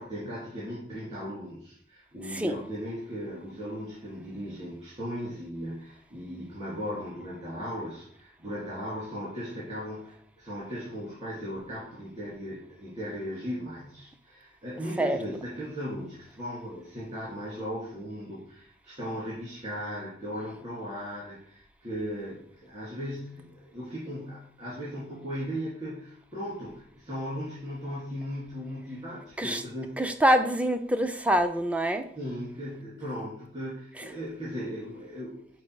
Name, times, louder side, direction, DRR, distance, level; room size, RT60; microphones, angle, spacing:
voice 1, 0.0-30.0 32.2-35.6, equal, 35° right, -8 dB, 2.3 m, -37 dB
voice 2, 30.0-32.0, right 1 dB, 5° right, 9 dB, 0.4 m, -25 dB
5.3 x 4.5 x 4.6 m, 0.64 s
head